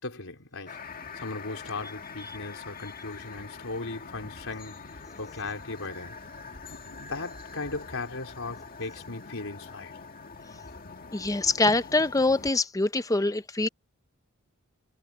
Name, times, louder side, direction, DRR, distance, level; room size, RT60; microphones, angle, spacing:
voice 1, 0.0-0.8 1.1-4.9 5.2-6.2 6.7-10.0, left 3 dB, 70° left, 4.3 m, -37 dB
sound 1, 0.7-12.5, left 4 dB, 45° left, 2.0 m, -44 dB
voice 2, 11.1-13.7, left 2 dB, 15° left, 0.7 m, -24 dB
head